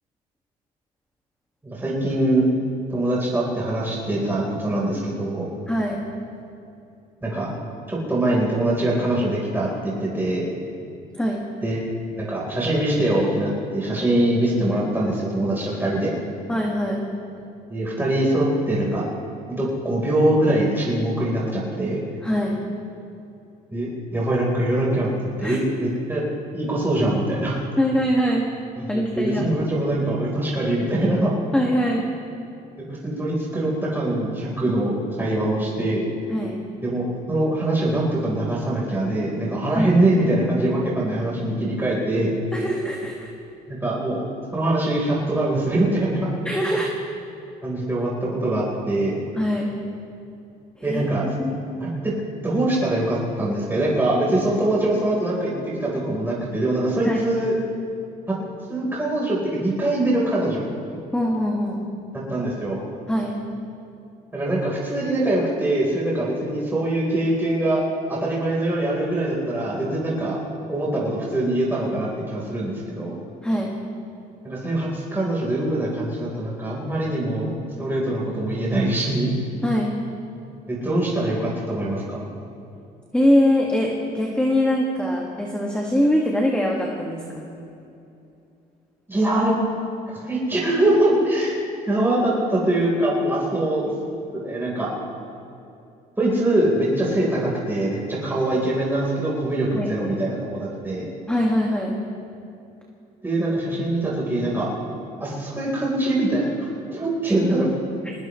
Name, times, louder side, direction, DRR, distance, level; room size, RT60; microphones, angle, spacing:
voice 1, 1.6-2.5 2.9-5.6 7.2-7.5 7.9-10.6 11.6-11.8 12.2-16.2 17.7-19.0 19.6-22.0 23.7-25.1 25.4-26.2 26.5-27.6 28.9-31.3 32.8-36.1 36.8-42.3 43.7-44.2 44.5-46.3 47.6-49.2 50.8-51.3 51.8-52.1 52.4-57.5 58.3-58.4 58.7-60.7 62.1-62.8 64.3-67.8 68.1-70.4 70.7-73.2 74.4-77.5 77.8-79.3 80.7-82.2 89.1-89.6 90.1-93.9 94.3-94.9 96.2-101.1 103.2-104.7 105.2-107.7, right 1 dB, 10° right, -5 dB, 4.1 m, -23 dB
voice 2, 5.7-6.0 11.1-11.4 16.5-17.0 22.2-22.6 25.4-25.6 27.8-28.5 28.9-29.5 31.5-32.1 36.3-36.6 39.7-40.0 42.5-43.3 46.4-46.9 49.4-49.7 50.8-51.0 51.4-51.6 57.0-57.2 61.1-61.8 63.1-63.3 73.4-73.7 79.6-79.9 83.1-87.5 99.8-99.9 101.3-102.0, equal, 5° left, -1 dB, 1.9 m, -22 dB
22.5 x 20.0 x 3.2 m, 2.7 s
cardioid pair, 110°, 17 cm